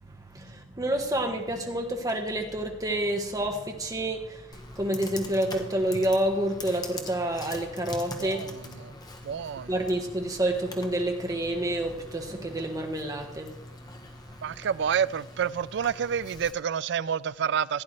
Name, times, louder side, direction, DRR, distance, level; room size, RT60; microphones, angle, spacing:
voice 1, 0.0-8.5 9.7-13.5, right 1 dB, 20° right, 1.3 m, -29 dB
Computer keyboard, 4.5-16.5, left 2 dB, 20° left, 1.1 m, -43 dB
voice 2, 8.2-8.9 9.2-9.8 14.4-17.8, right 7 dB, 65° right, 0.3 m, -29 dB
16.0 x 9.6 x 3.3 m
head